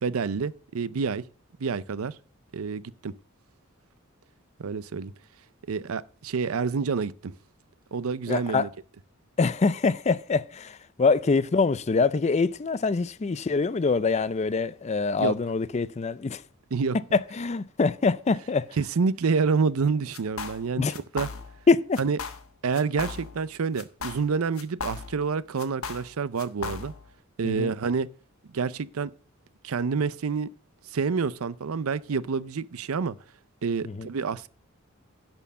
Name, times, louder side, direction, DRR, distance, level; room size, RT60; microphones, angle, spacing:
voice 1, 0.0-1.2 1.6-2.1 2.5-3.1 4.6-5.1 5.7-7.3 7.9-8.7 15.2-15.3 16.7-17.0 18.8-21.3 22.0-22.2 22.6-26.9 27.4-28.1 28.5-29.1 29.6-30.5 30.9-33.2 33.6-34.5, right 5 dB, 85° right, 0.5 m, -28 dB
voice 2, 8.3-8.7 9.4-10.7 11.0-16.4 17.1-18.6 20.8-20.9 21.7-22.0 27.4-27.7 34.0-34.1, left 4 dB, 30° left, 0.4 m, -24 dB
sound 1, 20.1-20.7 20.9-21.7 21.9-22.5 22.7-23.5 23.8-25.3 25.6-27.1, left 5 dB, 80° left, 1.2 m, -37 dB
11.0 x 4.5 x 7.3 m
head